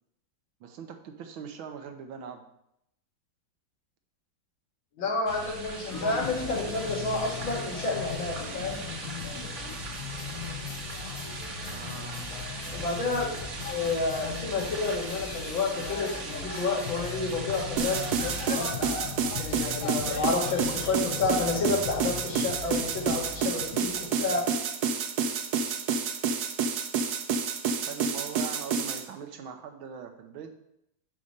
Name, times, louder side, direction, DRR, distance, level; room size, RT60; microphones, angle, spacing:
voice 1, 0.6-2.4 5.0-5.1 11.6-12.3 27.9-30.6, right 7 dB, 85° right, 6 dB, 1.6 m, -41 dB
voice 2, 5.0-8.8 12.7-13.3 13.7-18.7 19.4-24.5, left 3 dB, 75° left, -1 dB, 2.4 m, -30 dB
sound 1, 5.3-18.5, right 3 dB, 50° right, 1.0 m, -39 dB
sound 2, 5.9-24.4, left 5 dB, 55° left, 1.0 m, -38 dB
sound 3, 17.8-29.0, right 5 dB, 65° right, 1.1 m, -29 dB
9.8 x 4.2 x 5.1 m, 0.79 s
omnidirectional pair, 2.2 m